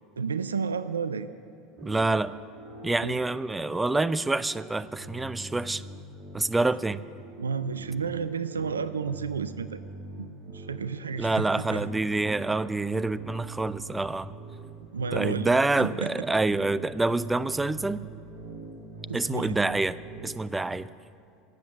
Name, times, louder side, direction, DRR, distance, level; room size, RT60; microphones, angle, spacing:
voice 1, 0.2-1.3 3.0-3.2 7.4-9.8 10.2-11.9 14.9-16.1 19.1-19.6, right 5 dB, 80° right, 14 dB, 0.4 m, -32 dB
voice 2, 1.8-2.3 2.8-5.8 6.3-7.0 11.2-14.3 15.1-18.0 19.1-20.0 20.2-20.9, right 2 dB, 10° right, 17 dB, 0.4 m, -27 dB
sound 1, 1.8-20.3, right 3 dB, 55° right, 2.0 m, -43 dB
17.0 x 7.8 x 7.3 m, 2.4 s
figure-of-eight pair, 75°, 0 cm